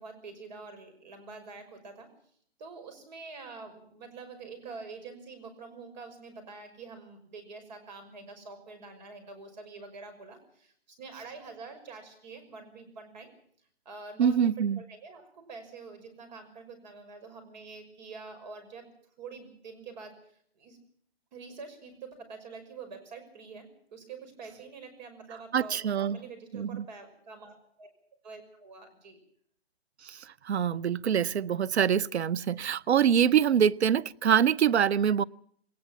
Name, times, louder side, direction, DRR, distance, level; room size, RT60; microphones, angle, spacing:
voice 1, 0.0-2.1 2.6-13.3 13.8-14.5 14.8-20.8 21.3-27.9 28.2-29.2, right 4 dB, 40° right, 7 dB, 5.9 m, -46 dB
voice 2, 14.2-14.8 25.5-26.2 26.5-26.8 30.0-35.2, right 8 dB, 80° right, 21 dB, 0.8 m, -25 dB
20.5 x 19.0 x 7.3 m, 0.64 s
hypercardioid pair, 165°, 32 cm